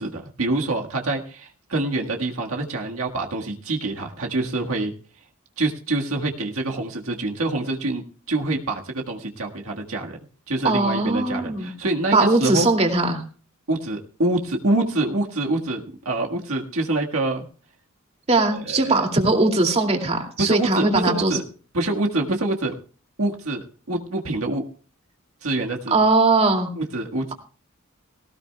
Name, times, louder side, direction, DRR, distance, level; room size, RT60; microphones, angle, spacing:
voice 1, 0.0-4.9 5.6-8.0 8.3-10.2 10.5-12.7 13.7-17.4 18.5-19.0 20.4-21.4 21.7-22.7 23.2-24.6 25.4-26.0 26.8-27.3, right 2 dB, 85° right, 1 dB, 1.6 m, -26 dB
voice 2, 10.6-11.7 12.1-13.2 18.3-21.4 25.9-26.7, right 2 dB, 30° right, 3 dB, 2.5 m, -20 dB
18.5 x 18.0 x 2.3 m, 0.39 s
head